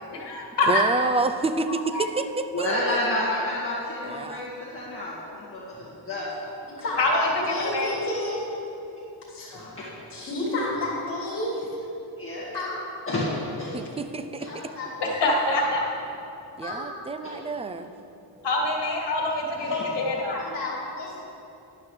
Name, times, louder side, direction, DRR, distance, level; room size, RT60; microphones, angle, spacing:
voice 1, 0.1-0.8 1.9-2.0 7.0-7.9 15.0-15.8 18.4-19.7 20.0-20.3, left 2 dB, 70° left, -1 dB, 1.9 m, -25 dB
voice 2, 0.7-3.0 4.0-4.5 13.7-14.5 16.6-17.9, right 3 dB, 15° right, 8 dB, 0.3 m, -28 dB
voice 3, 2.5-6.3 9.5-9.9 12.2-12.5 13.1-13.3 13.6-13.8 14.4-14.5 17.2-17.3 18.3-18.4 19.6-19.7, left 1 dB, 30° left, -8 dB, 1.9 m, -30 dB
voice 4, 6.8-8.4 9.3-9.7 10.1-11.7 12.5-12.8 14.5-15.2 16.6-16.8 17.6-17.9 19.7-19.8 20.3-21.2, left 2 dB, 50° left, -6 dB, 2.8 m, -31 dB
13.5 x 11.0 x 3.2 m, 2.8 s
wide cardioid pair, 150°, 44 cm